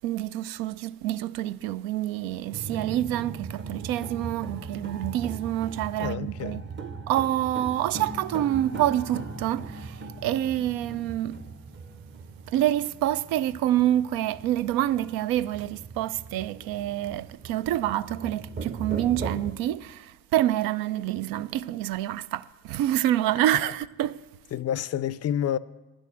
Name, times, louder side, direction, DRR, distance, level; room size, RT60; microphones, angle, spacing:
voice 1, 0.0-6.6 7.1-11.4 12.5-24.2, right 13 dB, 70° right, 0.5 m, -27 dB
sound 1, 2.5-19.5, right 4 dB, 30° right, 0.8 m, -39 dB
voice 2, 6.0-6.6 24.5-25.6, left 10 dB, 45° left, 0.5 m, -29 dB
10.0 x 6.3 x 8.3 m
hypercardioid pair, 60°, 37 cm